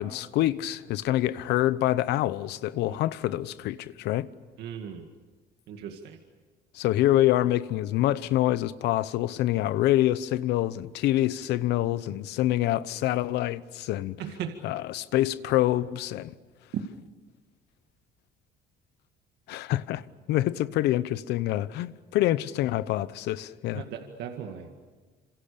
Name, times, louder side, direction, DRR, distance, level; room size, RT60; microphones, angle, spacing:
voice 1, 0.0-4.3 6.7-14.2 14.6-16.3 19.5-23.8, left 14 dB, 85° left, 0.9 m, -26 dB
voice 2, 4.6-5.0 5.7-6.2 14.2-14.5 16.7-16.8 23.7-24.8, right 9 dB, 80° right, 2.1 m, -36 dB
27.5 x 26.5 x 6.9 m
cardioid pair, 110°, 17 cm